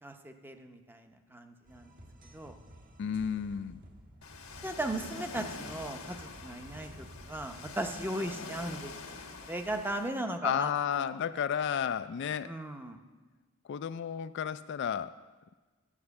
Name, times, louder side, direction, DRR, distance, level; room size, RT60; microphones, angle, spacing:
voice 1, 0.0-1.9 2.3-2.6 4.6-8.9 9.4-11.2 12.4-13.0, right 1 dB, 10° right, 6 dB, 0.7 m, -37 dB
sound 1, 1.6-9.1, equal, 45° right, 1.2 m, -54 dB
voice 2, 3.0-3.8 10.4-12.5 13.6-15.2, left 8 dB, 55° left, 12 dB, 0.3 m, -32 dB
Ocean, 4.2-10.1, left 4 dB, 85° left, 1.2 m, -45 dB
9.8 x 7.6 x 7.0 m, 1.3 s
head